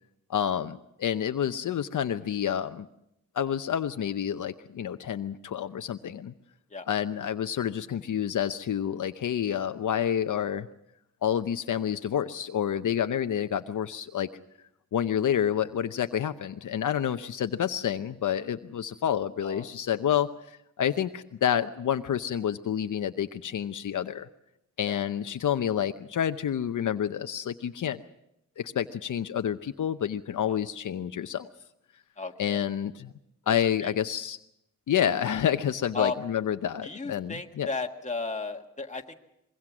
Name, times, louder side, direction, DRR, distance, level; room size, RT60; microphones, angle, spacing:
voice 1, 0.3-2.9 3.3-6.3 6.9-10.7 11.2-14.3 14.9-24.3 24.8-28.0 28.6-31.5 32.4-33.1 33.5-34.4 34.9-37.7, left 9 dB, 70° left, 9 dB, 0.8 m, -29 dB
voice 2, 32.2-32.6 33.5-33.6 33.8-33.9 35.9-36.2 36.8-39.1, left 3 dB, 20° left, 3 dB, 1.7 m, -34 dB
24.0 x 22.0 x 6.1 m, 0.80 s
wide cardioid pair, 100°, 32 cm